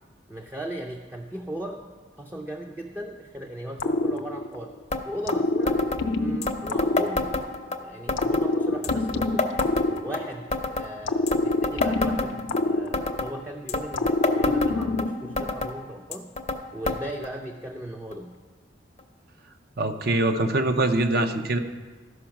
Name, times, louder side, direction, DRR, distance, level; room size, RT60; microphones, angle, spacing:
voice 1, 0.3-1.8 2.2-4.7 5.1-5.8 6.1-7.3 7.7-9.5 10.0-16.3 16.7-18.3, right 1 dB, 10° right, 1 dB, 0.5 m, -37 dB
sound 1, 3.8-4.8 5.3-7.7 8.2-10.6 11.1-13.5 13.9-15.4, left 2 dB, 80° left, 0.6 m, -26 dB
sound 2, 4.9-5.0 5.3-5.4 5.7-6.0 6.4-7.8 8.1-8.5 8.8-10.2 10.5-10.9 11.3-12.6 12.9-13.3 13.7-15.0 15.4-15.7 16.1-16.6 16.9-17.0 17.2-17.3 18.1-18.2 19.0-19.1, left 3 dB, 40° left, 0.6 m, -28 dB
voice 2, 19.8-21.6, right 2 dB, 55° right, 7 dB, 0.7 m, -23 dB
13.0 x 5.4 x 5.8 m, 1.4 s
head